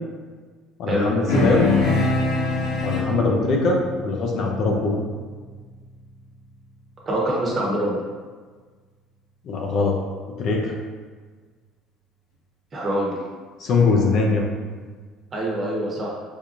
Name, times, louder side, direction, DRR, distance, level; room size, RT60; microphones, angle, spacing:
voice 1, 0.8-1.7 2.8-5.0 9.4-10.0 10.4-10.7 13.6-14.5, left 3 dB, 60° left, 0 dB, 0.6 m, -21 dB
sound 1, 1.3-6.0, left 2 dB, 75° left, 1.0 m, -25 dB
voice 2, 7.1-7.9 12.7-13.1 15.3-16.1, right 1 dB, 35° right, -4 dB, 1.1 m, -24 dB
4.4 x 2.4 x 2.6 m, 1.5 s
supercardioid pair, 85°, 0 cm